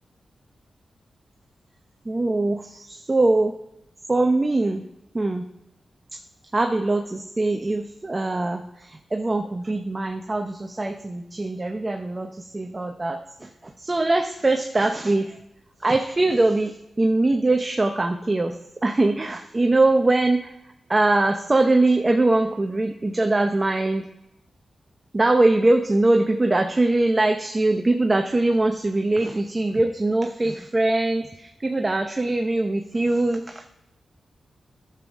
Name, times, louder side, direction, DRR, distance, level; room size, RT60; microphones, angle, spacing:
voice 1, 2.1-3.5 4.1-4.8 5.1-5.4 6.5-12.3 12.5-13.5 13.8-15.4 15.8-18.5 18.8-20.5 20.9-24.1 25.1-33.7, right 2 dB, 30° right, 4 dB, 0.7 m, -22 dB
11.5 x 7.1 x 3.6 m, 0.87 s
cardioid pair, 65°, 0 cm